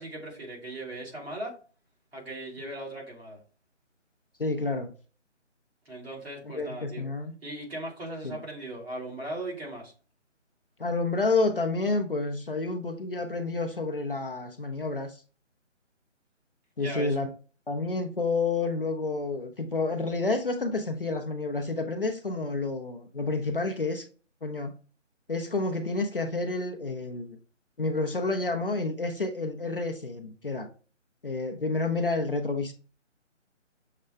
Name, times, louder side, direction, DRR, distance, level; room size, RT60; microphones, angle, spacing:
voice 1, 0.0-1.6 2.1-3.4 5.9-7.0 7.4-9.9 16.8-17.2, right 1 dB, 55° right, 2.3 m, -38 dB
voice 2, 4.4-4.9 6.4-7.3 8.2-8.4 10.8-15.2 16.8-17.3 17.7-24.1 24.4-24.7 25.3-27.4 27.8-30.7 31.2-32.7, left 3 dB, 50° left, 0.5 m, -29 dB
6.5 x 2.2 x 3.3 m
hypercardioid pair, 175°, 37 cm